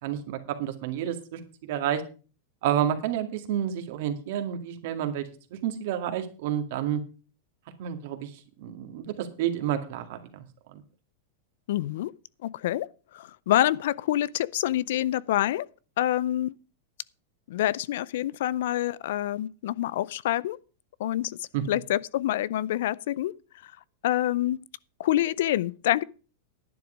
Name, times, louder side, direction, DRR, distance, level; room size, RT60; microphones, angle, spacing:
voice 1, 0.0-2.0 2.6-7.0 7.8-8.3 8.6-10.5 10.7-10.8 21.5-21.6, right 10 dB, 65° right, 2.0 m, -30 dB
voice 2, 11.7-12.1 12.4-12.9 13.1-15.7 16.0-16.6 17.5-20.6 21.0-21.4 21.7-23.3 23.6-23.7 24.0-24.6 25.0-26.0, left 13 dB, 70° left, 0.4 m, -26 dB
10.5 x 9.4 x 5.0 m
hypercardioid pair, 115°, 0 cm